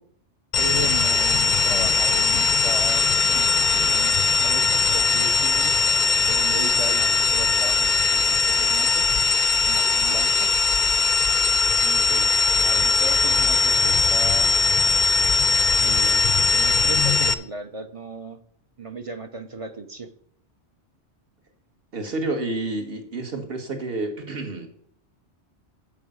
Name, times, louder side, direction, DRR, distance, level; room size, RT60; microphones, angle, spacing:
sound 1, 0.5-17.3, left 4 dB, 55° left, 0.5 m, -20 dB
voice 1, 0.6-4.1 4.4-5.7 6.2-9.1 9.7-10.5 11.8-14.5 15.7-18.4 18.8-20.1, right 3 dB, 35° right, 8 dB, 0.6 m, -35 dB
voice 2, 21.9-24.7, right 2 dB, 55° right, 4 dB, 1.7 m, -29 dB
7.8 x 7.1 x 6.3 m, 0.67 s
omnidirectional pair, 1.2 m